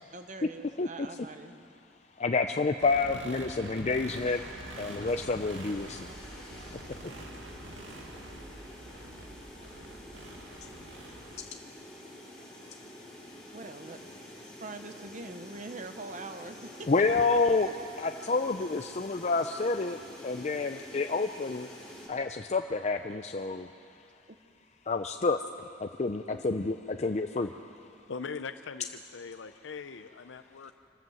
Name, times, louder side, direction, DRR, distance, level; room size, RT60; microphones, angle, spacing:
voice 1, 0.1-1.6 13.5-14.2 14.6-17.3 17.6-17.8 24.3-24.4 26.3-26.5, right 2 dB, 45° right, 8 dB, 1.1 m, -43 dB
voice 2, 2.2-4.4 4.8-6.1 16.9-17.7 18.0-21.7 22.1-23.7 24.9-25.4 25.8-27.5, left 3 dB, 40° left, 6 dB, 0.5 m, -29 dB
sound 1, 2.8-11.4, right 1 dB, 80° right, 2.2 m, -46 dB
sound 2, 4.0-22.1, equal, 5° left, 6.3 m, -48 dB
voice 3, 28.1-30.7, left 5 dB, 90° left, 10 dB, 0.6 m, -41 dB
25.5 x 13.0 x 7.8 m, 2.5 s
head